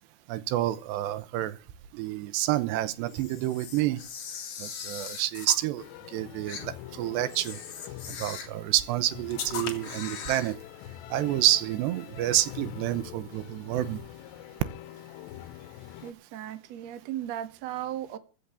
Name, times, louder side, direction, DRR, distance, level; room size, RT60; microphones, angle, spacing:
voice 1, 0.3-1.6 1.9-4.0 4.6-7.6 8.1-10.6 11.1-14.0, right 14 dB, 80° right, 3.1 m, -28 dB
Camera, 3.1-5.6 6.5-6.7 7.3-8.6 9.3-10.5, left 7 dB, 45° left, 3.1 m, -39 dB
sound 1, 5.8-16.1, left 14 dB, 85° left, 3.0 m, -45 dB
voice 2, 16.0-18.2, right 12 dB, 55° right, 2.0 m, -36 dB
15.0 x 7.1 x 8.3 m
omnidirectional pair, 4.9 m